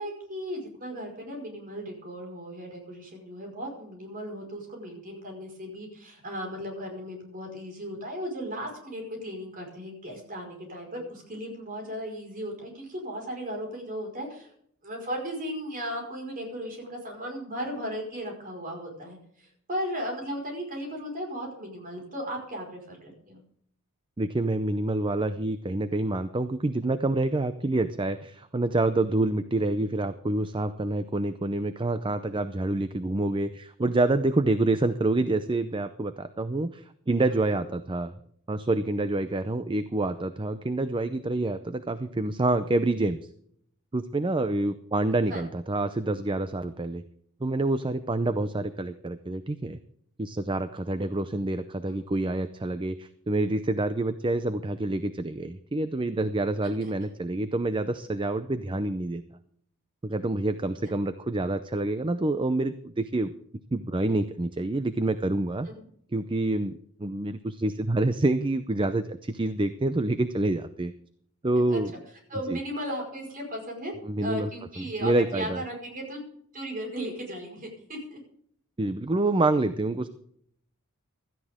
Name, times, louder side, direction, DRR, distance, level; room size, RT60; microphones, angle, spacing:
voice 1, 0.0-14.5 14.8-23.4 45.3-45.4 51.8-52.0 65.6-65.8 71.7-71.8 72.3-73.9 74.2-76.2 76.5-78.2, equal, 40° right, 2 dB, 5.0 m, -36 dB
voice 2, 24.2-38.1 38.5-43.2 43.9-47.0 47.4-49.8 50.2-59.2 60.0-63.3 63.7-65.7 66.1-66.7 67.0-70.9 71.4-71.9 72.5-72.6 74.0-74.5 74.8-75.6 78.8-80.1, right 2 dB, 25° right, 11 dB, 0.6 m, -27 dB
16.5 x 13.5 x 3.6 m, 0.66 s
head